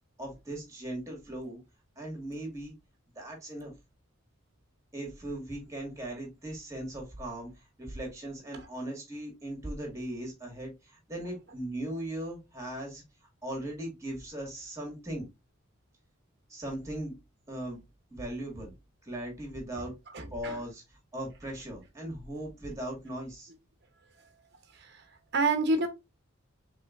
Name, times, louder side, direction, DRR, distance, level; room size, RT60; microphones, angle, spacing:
voice 1, 0.2-1.6 2.0-2.7 3.2-3.7 4.9-13.0 13.4-15.3 16.5-17.1 17.5-17.8 18.1-18.7 19.0-19.9 20.3-23.5, right 1 dB, 15° right, 2.1 m, -38 dB
voice 2, 20.1-20.6 24.7-25.1 25.3-25.9, right 3 dB, 50° right, 1.0 m, -29 dB
5.5 x 3.7 x 2.5 m
head